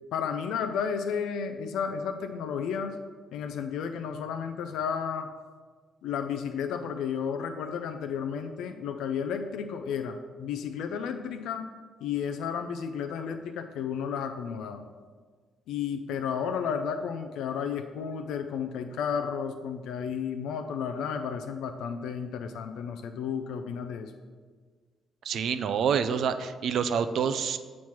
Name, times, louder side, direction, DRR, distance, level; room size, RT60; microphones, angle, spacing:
voice 1, 0.1-3.0 3.3-5.3 6.0-11.7 12.0-14.8 15.7-24.1, left 7 dB, 85° left, 6 dB, 0.4 m, -32 dB
voice 2, 25.2-27.6, right 7 dB, 70° right, 11 dB, 0.4 m, -27 dB
7.0 x 3.1 x 5.8 m, 1.5 s
cardioid pair, 90°, 0 cm